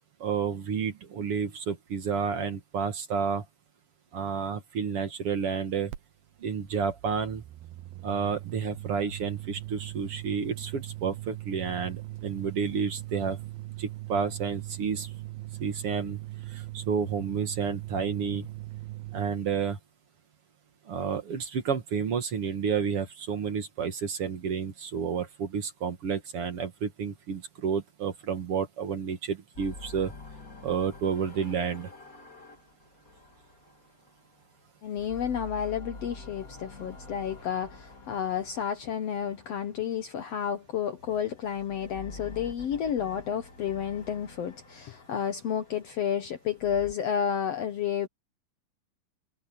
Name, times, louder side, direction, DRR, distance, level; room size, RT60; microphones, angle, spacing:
voice 1, 0.2-3.4 4.1-5.9 6.4-7.4 8.0-13.4 13.8-15.1 15.6-16.2 16.5-18.5 19.1-19.8 20.9-30.1 30.6-31.9, right 6 dB, 50° right, 2.0 m, -30 dB
sound 1, 5.9-6.0 6.3-19.3, right 17 dB, 90° right, 2.7 m, -40 dB
sound 2, 29.5-34.5 34.9-40.2 40.9-46.9, left 2 dB, 25° left, 2.7 m, -47 dB
voice 2, 34.8-48.1, left 8 dB, 65° left, 1.6 m, -31 dB
omnidirectional pair, 4.0 m